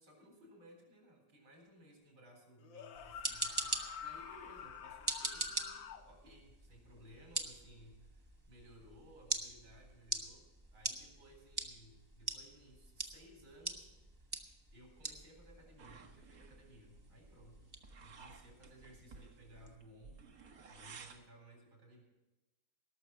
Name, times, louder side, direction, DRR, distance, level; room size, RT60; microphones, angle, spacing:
voice 1, 0.0-13.9 14.7-17.7 18.0-20.4 20.7-22.0, equal, 70° right, 0 dB, 4.7 m, -60 dB
sound 1, 2.6-6.0, left 7 dB, 80° left, 1.6 m, -48 dB
sound 2, 2.9-19.8, right 2 dB, 25° right, 0.5 m, -44 dB
sound 3, 15.8-21.3, right 5 dB, 55° right, 1.3 m, -57 dB
18.0 x 6.5 x 7.0 m, 1.1 s
omnidirectional pair, 2.1 m